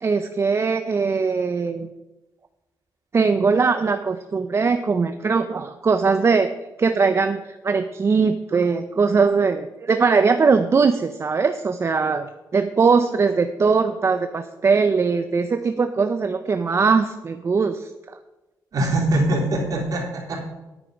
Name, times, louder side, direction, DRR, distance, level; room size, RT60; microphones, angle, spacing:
voice 1, 0.0-1.9 3.1-6.5 6.8-12.3 12.5-18.2, right 5 dB, 40° right, 9 dB, 0.6 m, -20 dB
voice 2, 18.7-20.4, right 1 dB, 60° right, -2 dB, 3.9 m, -22 dB
9.5 x 9.1 x 5.2 m, 1.1 s
cardioid pair, 90°, 7 cm